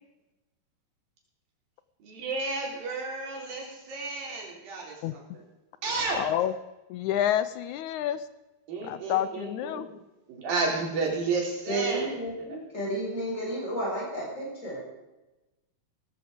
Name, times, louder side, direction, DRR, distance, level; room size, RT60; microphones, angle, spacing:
voice 1, 2.0-5.4 5.8-6.3 8.7-9.9 10.3-12.2 12.5-12.6, right 3 dB, 80° right, -1 dB, 5.5 m, -32 dB
voice 2, 6.2-6.5 6.9-8.2 8.8-9.9, left 11 dB, 80° left, 13 dB, 1.8 m, -28 dB
voice 3, 11.7-14.8, right 1 dB, 20° left, -3 dB, 6.9 m, -32 dB
18.0 x 13.5 x 5.2 m, 1.0 s
omnidirectional pair, 4.0 m